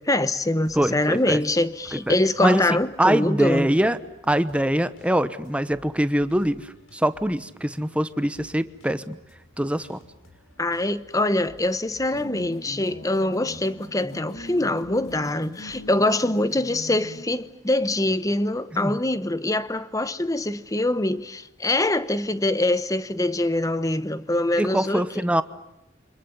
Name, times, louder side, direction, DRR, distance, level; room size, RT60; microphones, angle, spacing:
voice 1, 0.0-3.7 10.6-25.1, left 1 dB, 15° left, 1.0 m, -24 dB
sound 1, 0.6-16.0, equal, 85° left, 6.1 m, -55 dB
voice 2, 0.7-1.4 1.9-2.1 2.4-2.7 3.0-4.0 4.3-9.2 9.6-10.0 18.7-19.0 24.6-25.4, right 1 dB, 5° right, 0.9 m, -23 dB
sound 2, 12.1-17.3, left 1 dB, 50° left, 2.2 m, -40 dB
29.0 x 26.0 x 7.1 m
head